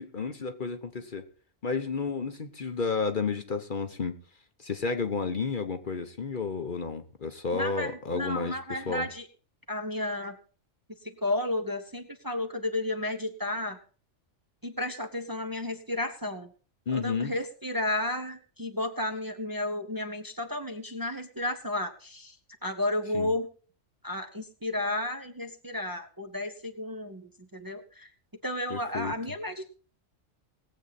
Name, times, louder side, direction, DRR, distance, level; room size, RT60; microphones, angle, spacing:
voice 1, 0.0-1.3 1.6-4.2 4.6-9.1 16.9-17.3 23.1-23.3 28.7-29.1, left 4 dB, 45° left, 7 dB, 1.0 m, -31 dB
voice 2, 7.5-9.3 9.7-10.4 11.0-13.8 14.6-16.5 16.9-22.4 22.6-23.5 24.0-28.1 28.4-29.7, left 1 dB, 20° right, 5 dB, 0.9 m, -32 dB
20.0 x 8.0 x 4.1 m, 0.39 s
omnidirectional pair, 1.3 m